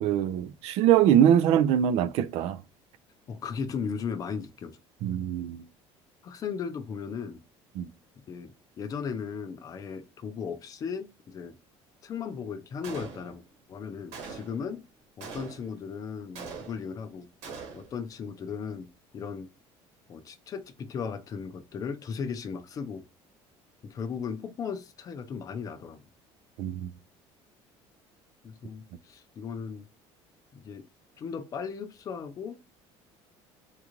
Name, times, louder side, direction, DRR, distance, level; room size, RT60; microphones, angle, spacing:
voice 1, 0.0-2.6 5.0-5.6 7.8-7.9 26.6-26.9, right 10 dB, 65° right, 0.4 m, -23 dB
voice 2, 3.3-4.8 6.2-7.4 8.3-11.6 12.0-13.4 13.7-14.8 15.2-17.3 17.7-18.9 19.1-19.5 20.1-23.1 23.8-26.0 28.4-29.9 30.5-30.9 31.2-32.6, left 6 dB, 30° left, 0.5 m, -36 dB
Gunshot gunfire, 12.8-13.5 14.1-14.7 15.2-15.8 16.3-17.0 17.4-18.0, right 5 dB, 85° right, 1.3 m, -42 dB
3.6 x 2.5 x 2.9 m
cardioid pair, 160°, 11 cm